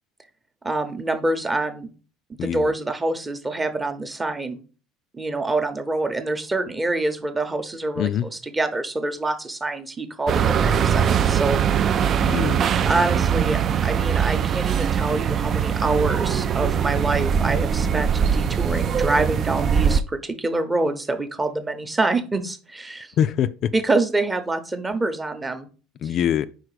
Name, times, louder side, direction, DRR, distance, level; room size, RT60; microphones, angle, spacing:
voice 1, 0.6-1.9 2.4-4.6 5.1-12.1 12.8-23.1 23.7-25.7, right 2 dB, 15° right, 0.8 m, -26 dB
voice 2, 2.4-2.7 8.0-8.3 12.2-12.6 23.2-23.7 26.0-26.5, left 10 dB, 55° left, 0.3 m, -23 dB
sound 1, 10.3-20.0, right 8 dB, 45° right, 0.3 m, -21 dB
4.8 x 4.0 x 4.9 m
supercardioid pair, 95°, 0 cm